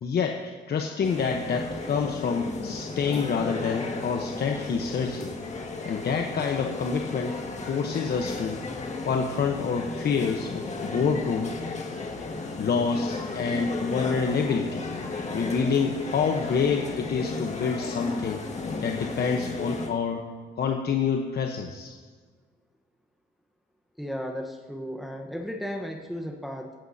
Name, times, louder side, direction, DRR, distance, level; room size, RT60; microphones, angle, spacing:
voice 1, 0.0-5.3 5.8-8.6 9.0-11.6 12.6-14.9 15.3-18.4 18.8-20.2 20.6-21.9, left 5 dB, 55° left, 3 dB, 1.0 m, -27 dB
sound 1, 1.0-19.9, left 3 dB, 35° left, 2.0 m, -35 dB
voice 2, 24.0-26.7, equal, ahead, 1 dB, 1.1 m, -35 dB
15.5 x 15.5 x 2.8 m, 1.5 s
cardioid pair, 90°, 20 cm